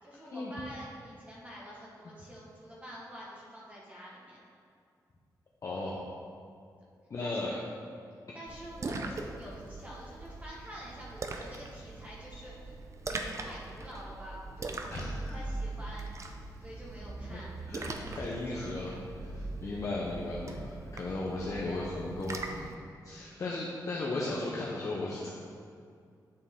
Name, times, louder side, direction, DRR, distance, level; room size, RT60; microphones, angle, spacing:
voice 1, 0.0-4.4 7.2-7.7 8.3-12.8 13.1-14.7 15.2-16.1 16.6-17.5 18.0-19.0 19.5-19.7 23.2-23.4, equal, 20° right, -6 dB, 1.4 m, -47 dB
voice 2, 5.6-6.1 7.1-7.6 14.9-15.3 17.3-17.4 17.7-18.9 19.2-22.8 23.0-25.3, left 2 dB, 45° left, -5 dB, 0.8 m, -36 dB
Splash splatter, 8.5-22.8, right 3 dB, 45° right, 0.6 m, -41 dB
9.7 x 4.3 x 3.7 m, 2.3 s
wide cardioid pair, 100°, 7 cm